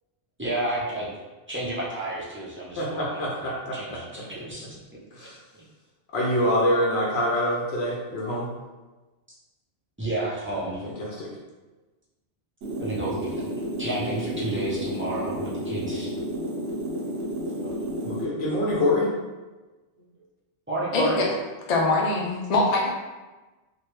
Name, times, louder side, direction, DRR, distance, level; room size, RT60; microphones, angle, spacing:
voice 1, 0.4-1.1 1.5-4.7 5.2-5.3 10.0-10.8 12.8-13.4 13.8-16.1 17.6-17.8 20.7-21.2, right 2 dB, 15° right, -7 dB, 0.4 m, -31 dB
voice 2, 2.8-4.2 5.2-5.3 6.1-8.5 10.8-11.3 18.0-19.1, left 1 dB, 65° left, -4 dB, 0.8 m, -25 dB
sound 1, 12.6-18.2, equal, 85° right, 1.0 m, -31 dB
voice 3, 20.9-21.3 21.7-22.9, left 2 dB, 50° left, -2 dB, 0.5 m, -23 dB
3.3 x 2.2 x 3.0 m, 1.2 s
omnidirectional pair, 1.2 m